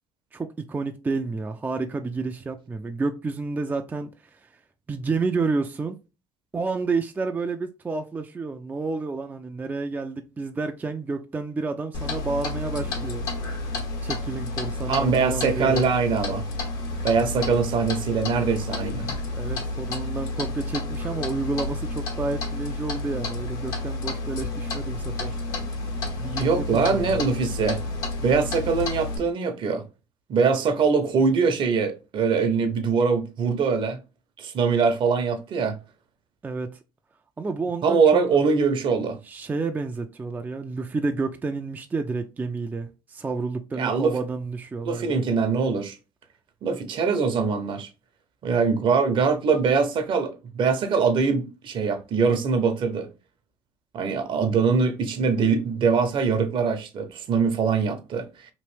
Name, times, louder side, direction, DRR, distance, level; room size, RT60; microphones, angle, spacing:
voice 1, 0.3-4.6 4.9-6.0 6.5-13.2 14.0-15.9 19.3-25.3 26.2-27.2 36.4-36.8 37.4-38.2 39.2-45.2, right 3 dB, 15° right, 0.3 m, -30 dB
Clock, 11.9-29.2, left 2 dB, 80° left, 1.4 m, -30 dB
voice 2, 14.9-16.4 17.0-19.1 26.4-27.8 28.2-29.8 30.3-34.0 34.4-35.8 37.8-39.2 43.8-44.1 44.8-46.0 46.6-47.9 48.4-53.1 53.9-58.3, right 5 dB, 50° right, 0.7 m, -23 dB
3.0 x 2.6 x 3.2 m
supercardioid pair, 80°, 10 cm